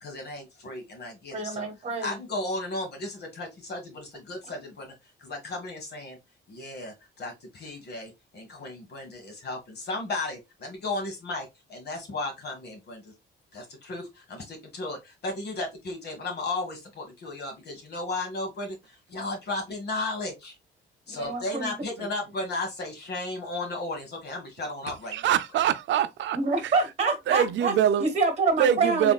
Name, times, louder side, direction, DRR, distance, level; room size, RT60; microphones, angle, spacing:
voice 1, 0.0-1.7 2.0-4.9 5.2-6.2 6.5-13.1 13.5-20.6 21.1-25.3, left 2 dB, 55° left, 1.6 m, -35 dB
voice 2, 1.3-2.2 21.1-21.7 22.0-22.1 26.3-27.7 28.0-29.1, right 4 dB, 35° right, 1.2 m, -26 dB
voice 3, 24.9-26.9 27.3-28.1 28.6-29.1, right 10 dB, 70° right, 0.5 m, -24 dB
3.6 x 3.3 x 2.3 m
cardioid pair, 90°, 20 cm